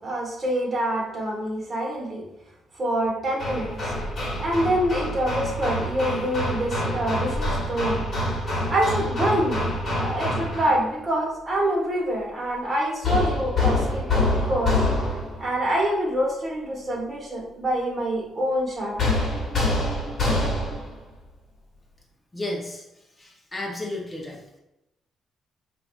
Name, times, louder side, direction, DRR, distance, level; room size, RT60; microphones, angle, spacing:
voice 1, 0.0-2.2 2.7-3.9 4.4-8.0 8.7-14.8 15.4-19.0, right 1 dB, 30° right, -3 dB, 1.2 m, -26 dB
Hammer, 3.4-10.8 13.0-15.5 19.0-20.9, left 2 dB, 45° left, 1.0 m, -26 dB
voice 2, 22.3-22.8 23.2-24.4, left 1 dB, 15° left, -2 dB, 0.6 m, -32 dB
4.6 x 2.4 x 2.4 m, 0.89 s
cardioid pair, 90°, 0 cm